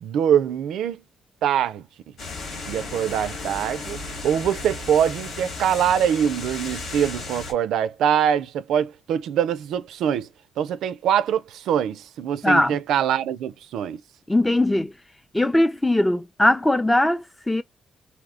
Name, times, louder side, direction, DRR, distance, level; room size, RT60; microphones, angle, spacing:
voice 1, 0.0-1.0 1.4-1.8 2.7-10.3 10.6-14.0, right 9 dB, 80° right, 0.3 m, -23 dB
sound 1, 2.2-7.5, left 3 dB, 75° left, 1.3 m, -34 dB
voice 2, 12.4-12.8 14.3-14.9 15.3-17.6, left 1 dB, 10° left, 0.4 m, -20 dB
2.9 x 2.1 x 3.6 m
cardioid pair, 90°, 0 cm